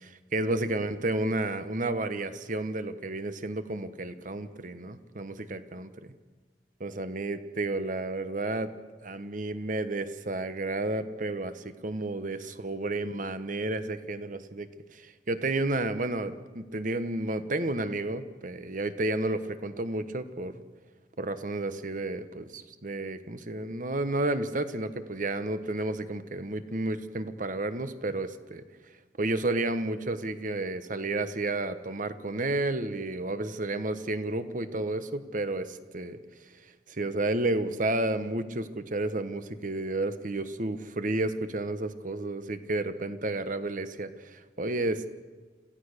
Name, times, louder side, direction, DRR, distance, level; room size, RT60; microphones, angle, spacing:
voice 1, 0.3-5.9 6.8-8.7 9.0-20.5 21.2-28.6 29.2-36.2 36.6-45.1, right 2 dB, 45° right, 11 dB, 1.2 m, -31 dB
27.5 x 16.0 x 6.6 m, 1.4 s
head